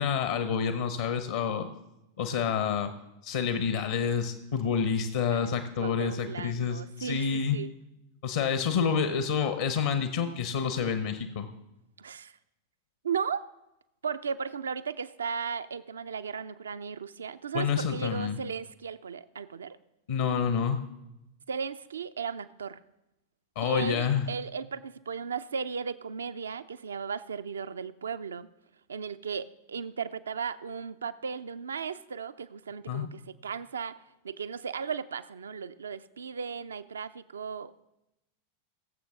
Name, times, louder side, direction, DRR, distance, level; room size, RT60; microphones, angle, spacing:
voice 1, 0.0-1.7 2.2-2.9 3.2-7.6 8.2-11.5 17.5-18.4 20.1-20.8 23.5-24.2 32.9-33.1, left 7 dB, 60° left, 9 dB, 0.9 m, -28 dB
voice 2, 5.8-7.7 12.0-12.3 13.0-13.4 14.0-19.8 21.5-22.8 23.6-28.5 28.9-33.9 34.2-37.7, right 6 dB, 70° right, 13 dB, 0.5 m, -36 dB
21.5 x 7.4 x 3.6 m, 0.92 s
figure-of-eight pair, 90°, 0 cm